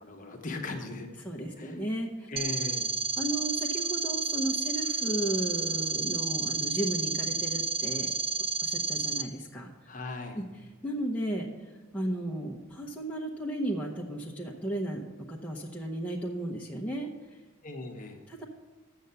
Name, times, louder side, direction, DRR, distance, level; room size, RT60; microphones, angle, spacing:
voice 1, 0.0-1.1 1.6-1.8 2.3-2.9 9.9-10.4 17.6-18.2, left 2 dB, 35° left, 3 dB, 1.0 m, -38 dB
voice 2, 1.2-2.3 3.2-8.1 8.6-9.7 10.3-10.4 10.8-11.5 11.9-17.1 18.3-18.4, right 1 dB, 5° left, -3 dB, 0.8 m, -34 dB
sound 1, 2.4-9.2, right 4 dB, 25° right, 0.5 m, -31 dB
7.9 x 6.7 x 6.9 m, 1.2 s
head